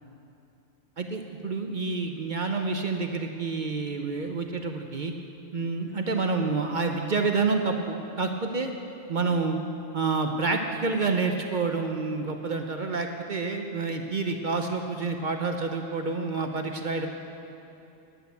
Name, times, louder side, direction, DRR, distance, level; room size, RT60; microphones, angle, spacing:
voice 1, 1.0-5.1 5.5-8.7 9.1-9.6 9.9-17.1, right 4 dB, 50° right, 4 dB, 0.7 m, -28 dB
11.0 x 8.5 x 8.0 m, 2.8 s
omnidirectional pair, 1.3 m